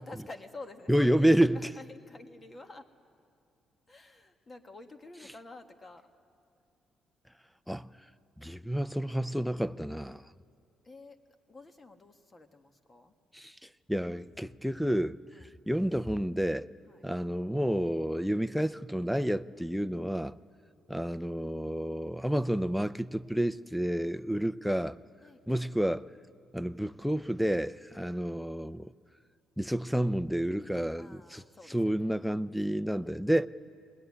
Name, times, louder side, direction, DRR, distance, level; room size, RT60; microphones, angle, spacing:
voice 1, 0.0-2.9 3.9-6.1 10.8-13.1 15.3-15.5 16.9-17.1 20.6-20.8 24.1-24.3 25.2-25.7 27.9-28.1 31.0-32.5 32.8-33.0, left 2 dB, 30° left, 1.7 m, -50 dB
voice 2, 0.9-1.6 7.7-7.9 8.4-10.2 13.3-15.1 15.4-16.7 17.0-20.4 20.9-25.0 25.5-26.1 26.5-28.9 29.6-31.4 31.7-33.5, equal, ahead, 0.5 m, -30 dB
22.0 x 19.5 x 9.8 m
cardioid pair, 90°, 0 cm